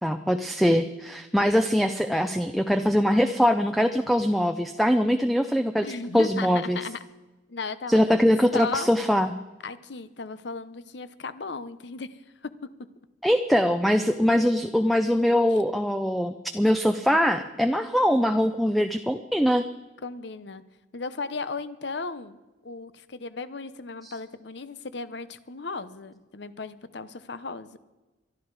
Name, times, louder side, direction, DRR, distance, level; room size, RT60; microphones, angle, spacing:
voice 1, 0.0-5.9 6.1-6.8 7.9-9.3 13.2-19.6 24.0-24.1, equal, ahead, 8 dB, 0.5 m, -22 dB
voice 2, 5.8-7.0 7.5-8.9 9.6-12.1 20.0-20.6 20.9-22.4 22.6-27.8, left 4 dB, 65° left, 14 dB, 0.8 m, -36 dB
22.5 x 12.5 x 4.8 m, 1.1 s
head